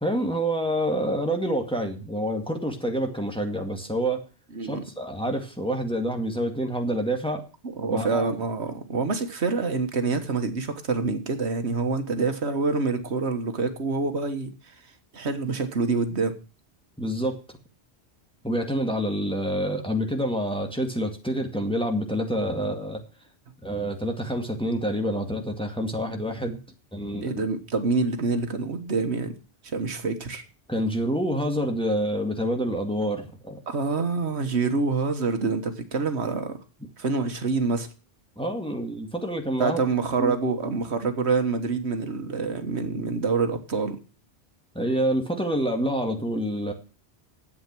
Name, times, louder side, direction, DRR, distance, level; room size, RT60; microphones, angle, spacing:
voice 1, 0.0-4.2 4.6-7.4 7.9-8.3 17.0-17.3 18.4-23.0 23.6-26.6 26.9-27.3 30.7-33.6 38.4-39.8 40.2-40.3 44.7-46.7, equal, 5° left, 3 dB, 2.0 m, -27 dB
voice 2, 4.5-4.8 7.8-14.8 15.1-16.3 27.2-29.4 29.6-30.4 33.7-36.6 37.0-37.9 39.6-44.0, right 4 dB, 75° right, 7 dB, 1.6 m, -26 dB
11.5 x 8.5 x 6.0 m, 0.34 s
omnidirectional pair, 1.1 m